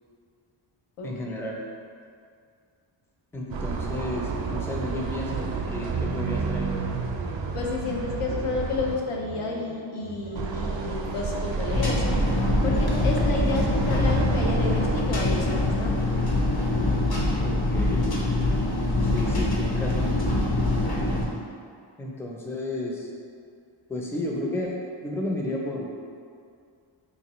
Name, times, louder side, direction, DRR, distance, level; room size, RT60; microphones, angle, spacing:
voice 1, 1.0-1.6 3.3-6.7 17.4-18.1 19.0-20.2 22.0-23.1 23.9-24.8 25.0-25.9, left 1 dB, 5° left, -1 dB, 0.4 m, -32 dB
sound 1, 3.5-9.0 10.4-15.0, right 4 dB, 65° right, 0.5 m, -30 dB
voice 2, 7.5-12.2 12.6-16.1, left 3 dB, 90° left, -1 dB, 0.7 m, -30 dB
sound 2, 9.1-16.5, equal, 70° left, 1.4 m, -44 dB
sound 3, 11.7-21.3, left 2 dB, 50° left, 0.8 m, -24 dB
4.0 x 2.6 x 2.9 m, 2.3 s
wide cardioid pair, 70°, 49 cm